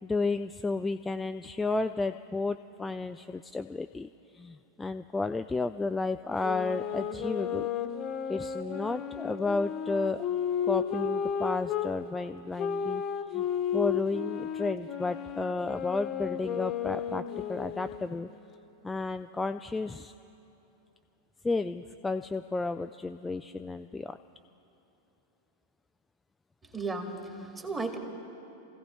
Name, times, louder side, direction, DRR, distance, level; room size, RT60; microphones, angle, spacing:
voice 1, 0.0-7.7 8.3-10.2 10.7-13.0 13.3-13.4 13.7-17.2 17.5-18.3 18.8-20.1 21.4-24.2, left 3 dB, 10° left, 9 dB, 0.3 m, -32 dB
sound 1, 6.4-11.9 12.6-18.1, left 8 dB, 35° left, 1.1 m, -33 dB
voice 2, 26.6-28.0, right 3 dB, 15° right, 3 dB, 2.0 m, -35 dB
28.5 x 16.0 x 3.2 m, 2.9 s
figure-of-eight pair, 90°, 0 cm